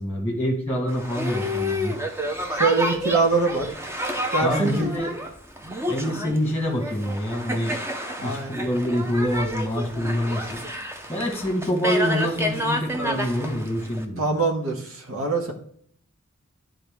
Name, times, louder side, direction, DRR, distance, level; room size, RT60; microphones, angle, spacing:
voice 1, 0.0-2.0 4.4-5.1 5.9-7.7 8.2-10.6 11.1-14.2, equal, 10° left, 1 dB, 1.2 m, -26 dB
Boat Water vehicle, 0.9-14.0, left 1 dB, 10° right, 0.6 m, -29 dB
voice 2, 2.5-3.7 4.3-4.9 8.2-8.5 14.2-15.5, right 3 dB, 75° right, 2 dB, 1.4 m, -23 dB
10.5 x 3.8 x 3.5 m, 0.63 s
head